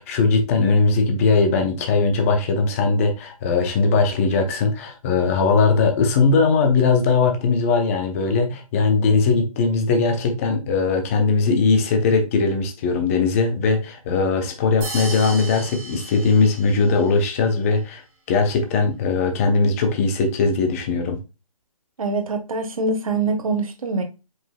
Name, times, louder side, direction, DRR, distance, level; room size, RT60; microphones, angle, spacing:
voice 1, 0.0-18.0 18.3-21.2, left 4 dB, 25° left, 0.7 m, -19 dB
sound 1, 14.8-17.1, right 2 dB, 15° right, 1.5 m, -35 dB
voice 2, 22.0-24.0, right 3 dB, 70° right, 1.2 m, -24 dB
5.2 x 3.8 x 2.2 m
hypercardioid pair, 155°, 19 cm